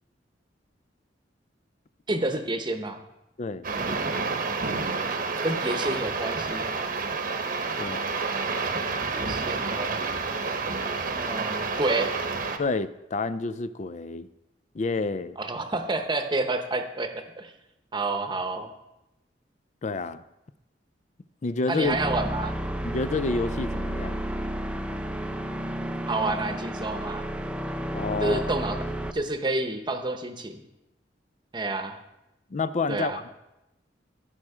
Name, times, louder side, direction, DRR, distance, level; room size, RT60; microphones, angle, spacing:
voice 1, 2.1-3.0 5.4-6.7 8.7-8.9 9.1-10.0 11.1-12.1 15.4-17.5 17.9-18.7 21.7-22.6 26.1-27.2 28.2-28.8 29.1-30.6 31.5-32.0 32.9-33.2, right 2 dB, 25° right, 6 dB, 0.9 m, -29 dB
sound 1, 3.6-12.6, right 4 dB, 55° right, 1.0 m, -29 dB
voice 2, 7.8-8.1 12.6-14.3 14.7-15.4 19.8-20.2 21.4-22.0 22.8-24.2 27.9-28.4 32.5-33.1, left 3 dB, 40° left, 14 dB, 0.4 m, -29 dB
sound 2, 21.8-29.1, equal, 5° right, 0.5 m, -32 dB
15.0 x 6.1 x 4.9 m, 0.93 s
head